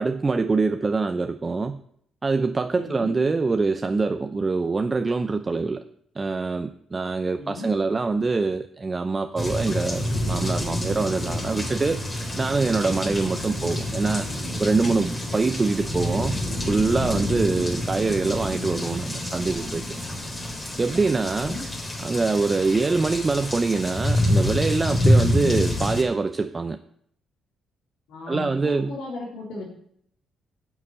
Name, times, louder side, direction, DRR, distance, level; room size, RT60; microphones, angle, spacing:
voice 1, 0.0-1.8 2.2-5.8 6.2-12.0 12.4-14.3 14.6-16.4 16.7-19.8 20.8-21.6 22.0-26.8 28.3-29.0, right 3 dB, 25° right, 8 dB, 0.6 m, -24 dB
voice 2, 2.7-3.1 7.3-7.7 21.4-21.7 28.1-29.7, left 2 dB, 85° left, -4 dB, 3.6 m, -36 dB
sound 1, 9.4-26.0, left 1 dB, 25° left, 3.4 m, -27 dB
9.7 x 7.1 x 8.8 m, 0.67 s
cardioid pair, 90°, 0 cm